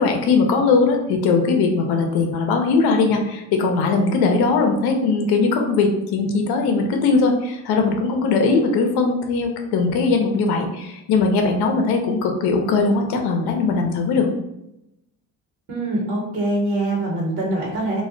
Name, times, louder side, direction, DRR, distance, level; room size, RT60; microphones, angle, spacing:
voice 1, 0.0-14.3, left 4 dB, 70° left, 4 dB, 0.6 m, -20 dB
voice 2, 15.7-18.0, right 1 dB, 55° right, -2 dB, 1.0 m, -23 dB
2.2 x 2.1 x 3.7 m, 0.87 s
cardioid pair, 95°, 40 cm